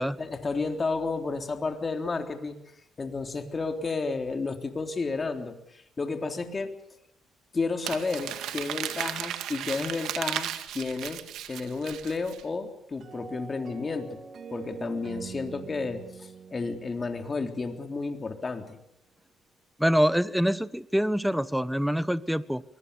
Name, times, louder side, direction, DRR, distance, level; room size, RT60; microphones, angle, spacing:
voice 1, 0.2-2.6 3.0-6.7 7.5-10.5 10.7-11.2 11.5-14.2 14.5-18.8, left 4 dB, 30° left, 5 dB, 3.5 m, -32 dB
Crumpling crinkling, 7.8-12.4, right 11 dB, 85° right, 1.9 m, -35 dB
sound 1, 13.0-18.2, right 6 dB, 55° right, 2.6 m, -44 dB
voice 2, 19.8-22.6, equal, ahead, 16 dB, 1.1 m, -25 dB
23.5 x 22.5 x 7.0 m, 0.75 s
cardioid pair, 90°, 0 cm